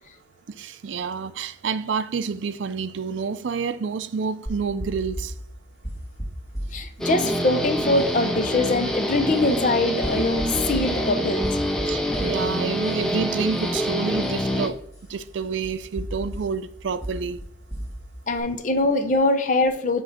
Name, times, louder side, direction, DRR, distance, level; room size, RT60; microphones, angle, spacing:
voice 1, 0.5-5.3 11.9-14.8 15.1-17.4, right 5 dB, 85° right, 0.4 m, -28 dB
sound 1, 4.5-18.4, equal, 20° left, 1.9 m, -37 dB
voice 2, 6.7-11.5 18.3-20.0, left 2 dB, 45° left, 0.7 m, -23 dB
Guitar, 7.0-14.7, equal, 5° left, 0.6 m, -26 dB
7.5 x 3.2 x 5.0 m
head